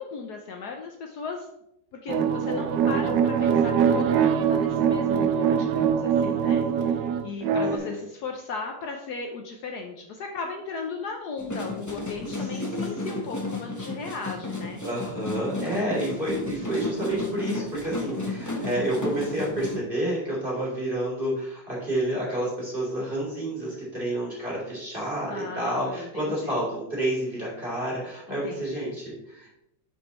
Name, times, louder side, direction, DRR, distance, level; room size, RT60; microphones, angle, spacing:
voice 1, 0.0-1.5 1.9-14.8 15.6-16.1 25.3-26.6 28.3-29.0, left 4 dB, 65° left, 3 dB, 1.2 m, -37 dB
sound 1, 2.1-7.8, right 7 dB, 75° right, 1.3 m, -23 dB
voice 2, 6.2-6.7 7.6-8.0 12.6-13.2 14.8-29.5, right 1 dB, 25° right, -6 dB, 3.2 m, -30 dB
sound 2, 11.4-19.8, left 2 dB, 15° left, 0.7 m, -33 dB
7.5 x 7.1 x 3.1 m, 0.80 s
omnidirectional pair, 2.1 m